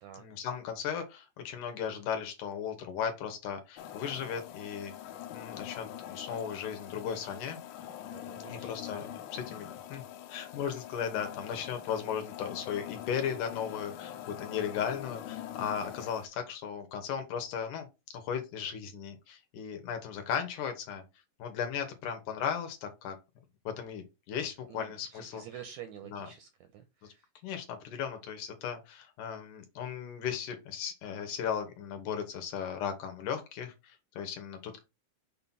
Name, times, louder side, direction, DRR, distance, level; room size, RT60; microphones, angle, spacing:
voice 1, 0.1-4.9 5.3-7.6 8.4-10.0 10.3-17.9 18.1-21.0 21.4-23.2 23.6-25.4 26.0-26.3 27.4-34.8, left 8 dB, 70° left, 2.5 m, -36 dB
sound 1, 3.8-16.3, left 11 dB, 90° left, 2.5 m, -44 dB
voice 2, 8.1-8.8 9.5-9.6 24.7-27.3, right 10 dB, 80° right, 1.7 m, -48 dB
6.6 x 2.9 x 5.5 m
omnidirectional pair, 4.0 m